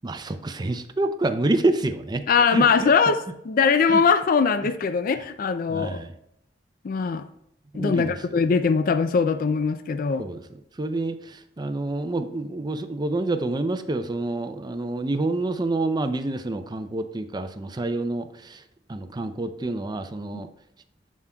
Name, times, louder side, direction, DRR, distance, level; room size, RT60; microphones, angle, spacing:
voice 1, 0.0-2.2 2.5-2.9 3.9-4.0 5.7-6.1 7.8-8.2 10.2-10.4 10.8-18.6 18.9-20.5, right 2 dB, 25° right, 9 dB, 0.5 m, -27 dB
voice 2, 2.3-3.2 3.4-6.0 6.8-7.3 7.7-10.2, left 5 dB, 55° left, 10 dB, 0.4 m, -21 dB
7.3 x 7.3 x 2.2 m, 0.78 s
head